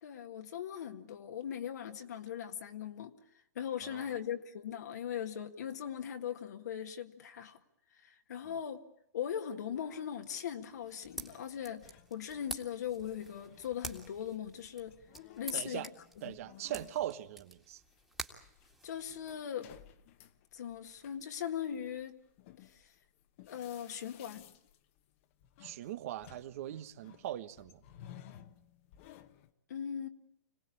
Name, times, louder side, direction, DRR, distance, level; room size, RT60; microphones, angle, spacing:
voice 1, 0.0-3.2 3.6-7.6 7.9-8.8 9.1-15.0 15.4-15.9 16.2-16.4 18.8-19.7 20.5-22.2 22.6-22.9 23.5-24.5 29.7-30.1, left 9 dB, 70° left, 1.7 m, -40 dB
sound 1, 9.7-12.7 13.0-29.5, left 11 dB, 45° left, 1.3 m, -57 dB
sound 2, 10.8-19.4, right 2 dB, 5° right, 2.0 m, -49 dB
voice 2, 15.5-15.9 16.2-17.8 25.6-27.8, right 12 dB, 50° right, 1.1 m, -40 dB
26.0 x 18.0 x 8.6 m
hypercardioid pair, 140°, 10 cm